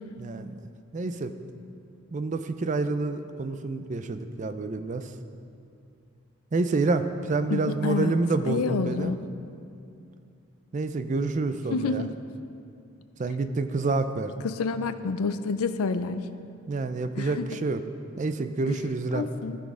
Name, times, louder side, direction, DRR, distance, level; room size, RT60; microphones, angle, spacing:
voice 1, 0.2-0.6 0.9-1.3 2.1-5.1 6.5-9.1 10.7-12.1 13.2-14.4 16.7-17.8 18.2-19.3, right 3 dB, 35° right, 10 dB, 0.4 m, -28 dB
voice 2, 7.5-8.2 8.4-9.2 11.7-12.1 14.4-16.2 17.2-17.5 18.7-18.8 19.1-19.6, left 4 dB, 80° left, 11 dB, 0.5 m, -28 dB
15.0 x 6.2 x 3.7 m, 2.5 s
head